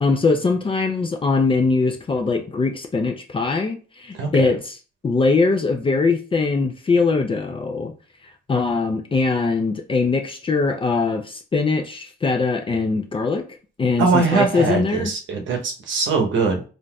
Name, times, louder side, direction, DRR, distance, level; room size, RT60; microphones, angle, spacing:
voice 1, 0.0-4.8 5.0-7.9 8.2-13.5 13.8-15.1, left 4 dB, 25° left, 0.5 m, -21 dB
voice 2, 14.0-16.6, right 4 dB, 70° right, 0.8 m, -21 dB
3.8 x 2.5 x 2.2 m
cardioid pair, 90°, 20 cm